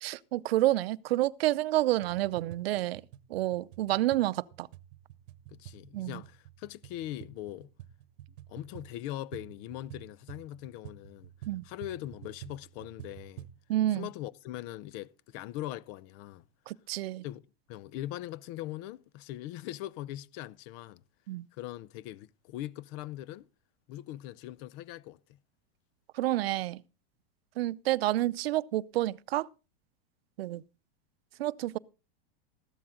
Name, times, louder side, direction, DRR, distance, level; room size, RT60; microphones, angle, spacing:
voice 1, 0.0-3.0 3.3-4.7 5.9-6.2 11.5-11.6 13.7-14.1 16.7-17.2 21.3-21.5 26.1-26.8 27.6-29.5 30.4-30.6 31.4-31.8, right 15 dB, 80° right, 0.7 m, -29 dB
sound 1, 1.9-13.6, right 12 dB, 60° right, 1.0 m, -50 dB
voice 2, 5.5-7.7 8.5-11.3 11.6-13.5 13.9-16.4 17.2-17.4 17.7-21.0 21.5-23.5 23.9-25.4, left 14 dB, 45° left, 0.7 m, -41 dB
14.5 x 12.0 x 3.7 m
supercardioid pair, 130°, 30 cm